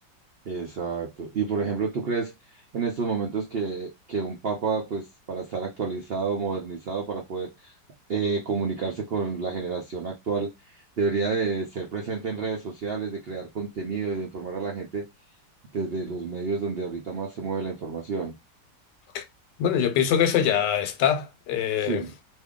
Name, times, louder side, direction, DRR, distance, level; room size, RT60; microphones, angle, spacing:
voice 1, 0.5-2.3 2.7-7.7 8.1-10.5 11.0-15.1 15.7-18.4 21.8-22.1, right 5 dB, 80° right, 0.5 m, -29 dB
voice 2, 19.6-22.0, left 9 dB, 75° left, 1.2 m, -23 dB
2.8 x 2.6 x 3.6 m
omnidirectional pair, 1.9 m